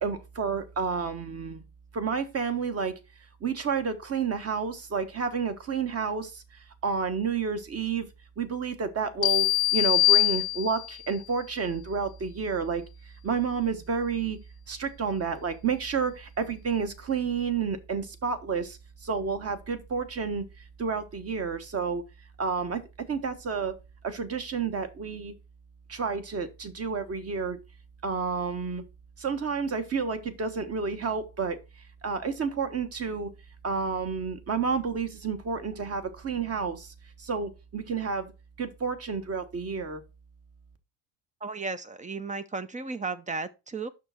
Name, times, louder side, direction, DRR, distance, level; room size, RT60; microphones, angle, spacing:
voice 1, 0.0-1.6 1.9-2.9 3.4-6.4 6.8-8.1 8.4-9.5 9.7-12.8 13.2-14.4 14.7-20.4 20.8-22.0 22.4-22.8 23.1-23.7 24.0-25.3 25.9-27.6 28.0-28.8 29.2-31.6 32.0-33.3 33.6-36.9 37.2-38.3 38.6-40.0, right 5 dB, 30° right, 1.3 m, -30 dB
sound 1, 9.2-11.0, left 16 dB, 55° left, 0.7 m, -23 dB
voice 2, 41.4-43.9, right 4 dB, 15° right, 0.5 m, -34 dB
6.8 x 6.1 x 4.2 m
cardioid pair, 115°, 45 cm